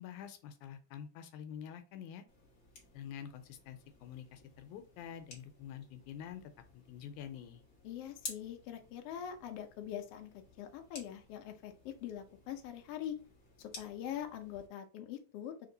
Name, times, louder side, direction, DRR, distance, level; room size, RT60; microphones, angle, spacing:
voice 1, 0.0-2.3 2.9-7.6, left 9 dB, 90° left, 8 dB, 2.1 m, -47 dB
sound 1, 2.3-14.7, left 3 dB, 50° left, 1.0 m, -54 dB
voice 2, 7.8-10.3 10.6-13.2 13.6-15.7, left 10 dB, 70° left, 4 dB, 1.5 m, -43 dB
4.4 x 2.9 x 3.9 m, 0.35 s
omnidirectional pair, 3.4 m